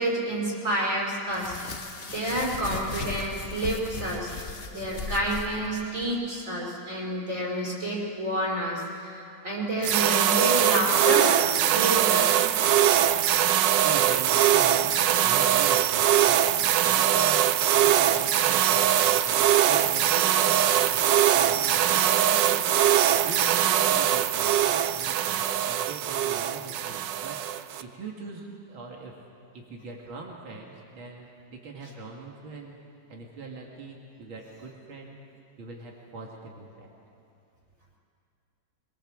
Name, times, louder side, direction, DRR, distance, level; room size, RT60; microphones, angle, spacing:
voice 1, 0.0-11.3 11.7-12.4, right 1 dB, 40° right, -5 dB, 5.7 m, -29 dB
sound 1, 1.3-6.1, left 4 dB, 40° left, 1.0 m, -37 dB
sound 2, 9.8-27.8, right 11 dB, 70° right, 1.3 m, -22 dB
voice 2, 13.8-21.0 21.3-22.7 22.9-27.4 27.8-29.1 29.5-32.8 33.1-35.2 35.6-36.9, right 3 dB, 85° right, -1 dB, 2.9 m, -41 dB
22.5 x 22.5 x 7.6 m, 2.6 s
omnidirectional pair, 2.2 m